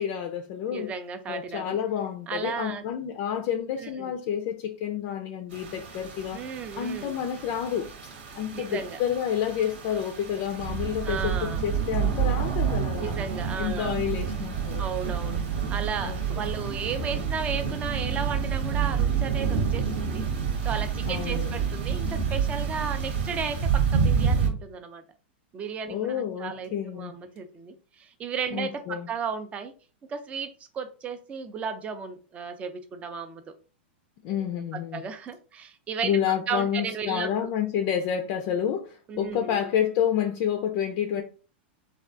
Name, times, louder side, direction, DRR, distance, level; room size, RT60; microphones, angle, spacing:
voice 1, 0.0-0.9 1.3-6.4 6.8-7.9 8.4-13.2 13.6-14.9 16.0-16.5 21.0-21.5 25.9-27.1 28.5-29.1 34.2-35.0 36.0-41.2, left 9 dB, 45° left, 0.4 m, -29 dB
voice 2, 0.7-1.8 2.3-2.8 3.8-4.1 6.3-7.1 8.5-9.0 11.0-11.6 13.0-13.9 14.8-15.4 15.7-20.3 20.6-25.0 25.5-29.7 30.1-33.5 34.3-37.5 39.1-39.7, right 6 dB, 20° right, 0.4 m, -34 dB
sound 1, 5.5-24.5, right 6 dB, 75° right, 1.1 m, -28 dB
3.4 x 2.3 x 2.5 m
hypercardioid pair, 135°, 6 cm